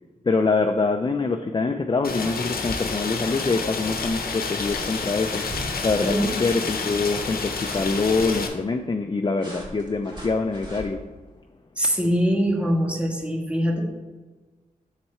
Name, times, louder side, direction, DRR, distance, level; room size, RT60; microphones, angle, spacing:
voice 1, 0.2-5.4 5.8-11.0, left 3 dB, 30° left, 5 dB, 0.4 m, -24 dB
Rain, 2.0-8.5, left 4 dB, 85° left, 0.8 m, -29 dB
sound 1, 4.0-4.4 4.6-5.0 5.4-5.7 6.0-6.2 6.9-8.3 9.4-10.9, right 1 dB, 30° right, 1.9 m, -39 dB
voice 2, 6.0-6.4 11.8-13.8, equal, 10° right, -1 dB, 1.6 m, -23 dB
6.6 x 4.4 x 4.3 m, 1.3 s
cardioid pair, 50°, 15 cm